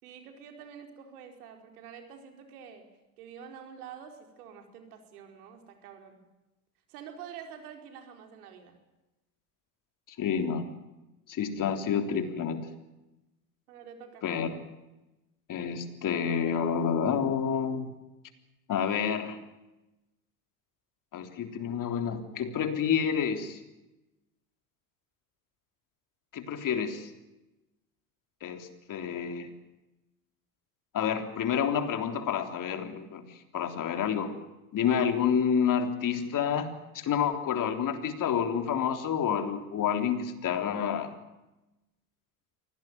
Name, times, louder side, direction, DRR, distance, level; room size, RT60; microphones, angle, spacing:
voice 1, 0.0-2.9 3.2-6.2 6.9-8.7 13.7-14.3, right 7 dB, 85° right, 5 dB, 4.7 m, -47 dB
voice 2, 10.2-10.7 11.3-12.7 14.2-14.6 15.5-17.9 18.7-19.4 21.1-23.6 26.3-27.1 28.4-29.5 30.9-34.4 34.7-41.2, left 7 dB, 45° left, 6 dB, 3.6 m, -29 dB
24.0 x 17.5 x 9.4 m, 1.0 s
hypercardioid pair, 90°, 43 cm